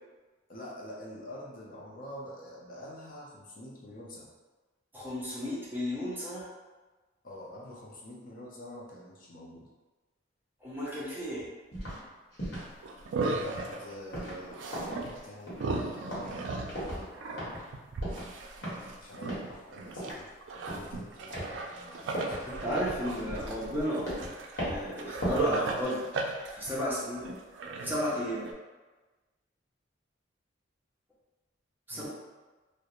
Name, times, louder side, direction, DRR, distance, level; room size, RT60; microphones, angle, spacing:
voice 1, 0.5-4.3 7.2-9.7 13.3-16.6 19.0-22.4 31.9-32.1, equal, 45° left, -4 dB, 0.5 m, -47 dB
voice 2, 4.9-6.5 10.6-11.5 22.5-24.1 24.6-26.1 26.5-27.3 27.8-28.5 31.9-32.1, equal, 10° right, -8 dB, 0.5 m, -33 dB
sound 1, 11.7-12.0 12.3-12.7 13.4-13.7 14.1-14.5 14.7-15.2 15.5-15.8 16.1-16.4 16.7-17.1 17.4-17.7 18.0-18.3 18.6-18.9 19.3-19.6 20.0-20.2 20.7-21.0 21.3-21.6 22.1-22.5 22.9-23.7 24.1-24.3 24.6-24.9 25.2-25.5 25.8-25.9, equal, 60° left, 1.0 m, -37 dB
sound 2, 12.5-13.9 14.5-15.2 15.5-20.1 20.4-28.5, right 3 dB, 70° right, 0.3 m, -36 dB
2.4 x 2.0 x 2.9 m, 1.2 s
head